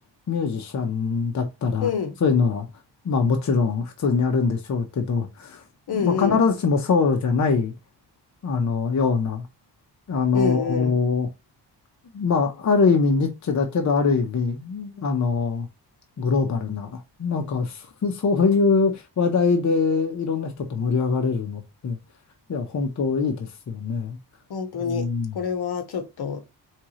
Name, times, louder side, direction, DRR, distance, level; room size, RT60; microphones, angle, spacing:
voice 1, 0.3-1.9 2.2-2.7 3.0-5.6 5.9-7.7 8.4-9.4 10.1-11.3 12.1-15.7 16.2-22.0 22.5-24.2 24.7-25.4, left 5 dB, 40° left, 0.8 m, -23 dB
voice 2, 1.8-2.1 5.9-6.4 10.3-11.0 24.5-25.1 25.3-26.4, left 6 dB, 60° left, 1.1 m, -26 dB
4.6 x 3.6 x 3.0 m
wide cardioid pair, 145°, 43 cm